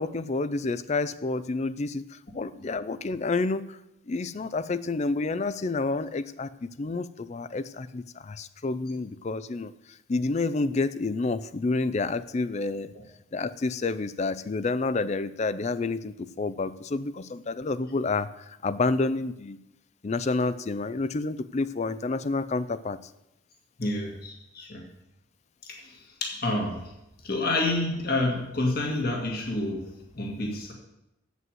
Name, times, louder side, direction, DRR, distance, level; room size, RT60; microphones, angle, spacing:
voice 1, 0.0-3.8 4.1-6.5 6.8-9.7 10.1-12.9 13.3-19.6 20.0-23.0, left 3 dB, 35° left, 15 dB, 0.4 m, -29 dB
voice 2, 23.8-24.9 25.6-26.9 27.2-30.7, left 2 dB, 50° left, 1 dB, 1.9 m, -29 dB
8.2 x 7.9 x 7.7 m, 0.88 s
head